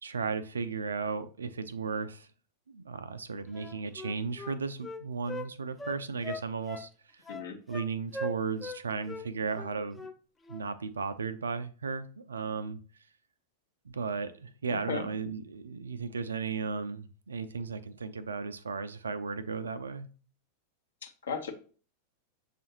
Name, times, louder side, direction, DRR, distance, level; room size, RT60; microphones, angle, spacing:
voice 1, 0.0-2.3 2.7-7.2 7.7-10.1 10.5-12.8 13.9-20.1, right 5 dB, 70° right, 12 dB, 0.4 m, -35 dB
Wind instrument woodwind instrument, 3.5-5.5 5.8-6.9 7.2-8.8 9.0-9.2 9.5-10.2 10.4-10.6, left 1 dB, 10° left, 0.4 m, -40 dB
voice 2, 14.7-15.1 21.0-21.5, left 6 dB, 65° left, 3 dB, 0.9 m, -36 dB
6.8 x 2.5 x 2.9 m, 0.39 s
figure-of-eight pair, 90°, 0 cm